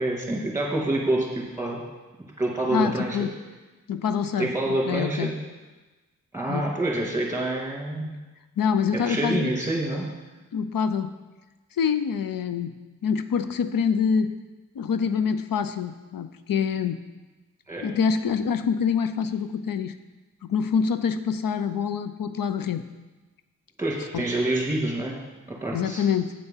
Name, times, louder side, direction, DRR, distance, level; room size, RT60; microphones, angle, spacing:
voice 1, 0.0-1.8 2.4-3.2 4.4-5.3 6.3-8.2 8.9-10.1 17.7-17.9 23.8-25.2 25.5-26.1, right 1 dB, 10° right, -2 dB, 2.2 m, -27 dB
voice 2, 2.7-3.3 3.9-5.3 6.5-6.6 8.0-8.1 8.6-9.5 10.5-11.1 11.8-14.3 14.8-17.0 17.8-19.9 20.4-22.8 24.1-24.2 25.7-26.3, left 6 dB, 80° left, 10 dB, 0.5 m, -26 dB
8.0 x 7.8 x 5.6 m, 1.2 s
wide cardioid pair, 105°, 33 cm